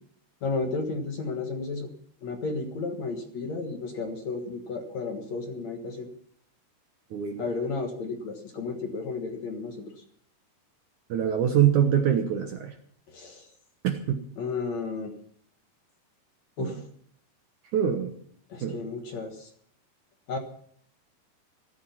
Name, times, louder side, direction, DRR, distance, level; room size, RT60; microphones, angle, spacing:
voice 1, 0.4-1.9 2.2-6.1 7.4-9.8 13.1-13.5 14.4-15.1 16.6-16.8 18.5-19.5 20.3-20.4, left 4 dB, 55° left, 4 dB, 2.4 m, -33 dB
voice 2, 7.1-7.4 11.1-12.7 13.8-14.2 16.6-16.8 17.7-18.1 18.6-18.8, right 9 dB, 65° right, 5 dB, 2.1 m, -24 dB
15.5 x 14.0 x 5.8 m, 0.62 s
omnidirectional pair, 4.6 m